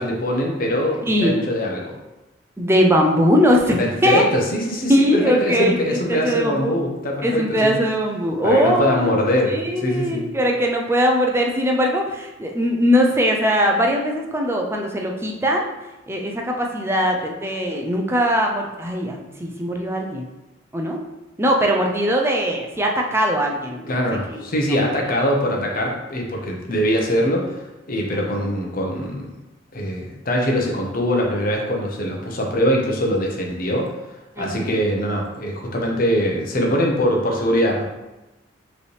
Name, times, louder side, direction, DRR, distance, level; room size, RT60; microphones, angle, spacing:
voice 1, 0.0-2.0 3.8-7.7 8.4-10.2 23.9-29.3 29.7-33.9 34.4-37.8, equal, 45° left, 0 dB, 0.9 m, -22 dB
voice 2, 1.0-1.4 2.6-4.2 4.9-6.8 7.2-9.2 9.5-15.7 16.1-20.3 20.7-21.0 21.4-24.0 24.3-24.4 24.7-24.9 28.1-28.4 34.4-34.8, equal, 10° right, 1 dB, 0.5 m, -20 dB
5.0 x 3.3 x 3.2 m, 1.0 s
head